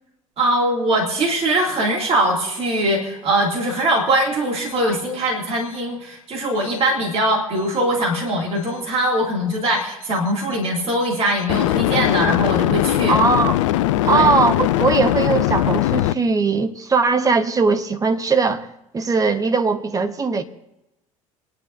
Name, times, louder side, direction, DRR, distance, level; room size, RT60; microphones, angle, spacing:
voice 1, 0.4-13.2 14.1-14.3, right 1 dB, 35° right, 2.7 m, -21 dB
sound 1, 6.6-6.8 11.5-16.1, left 14 dB, 60° left, 0.5 m, -20 dB
voice 2, 13.1-13.6 14.0-18.7 18.9-20.4, right 4 dB, 20° right, 1.3 m, -19 dB
29.0 x 11.0 x 2.7 m
figure-of-eight pair, 65°, 18 cm